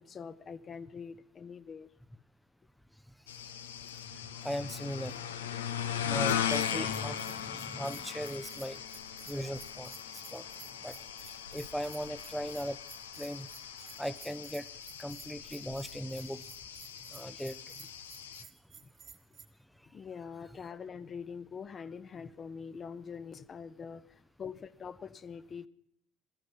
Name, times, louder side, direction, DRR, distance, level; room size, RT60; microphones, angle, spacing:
voice 1, 0.0-1.9 10.2-10.3 13.8-14.0 17.8-17.9 18.8-18.9 19.8-25.7, left 6 dB, 40° left, 13 dB, 0.8 m, -44 dB
sound 1, 3.3-18.4, left 9 dB, 85° left, 0.7 m, -38 dB
voice 2, 4.4-5.2 6.0-8.8 9.3-10.4 10.8-11.0 11.5-12.8 13.2-13.5 14.0-14.7 15.0-16.4 17.1-17.6, equal, ahead, 13 dB, 0.6 m, -38 dB
Bell, 6.3-19.5, right 7 dB, 50° right, 1.6 m, -54 dB
17.5 x 14.0 x 5.5 m, 0.70 s
hypercardioid pair, 60°, 0 cm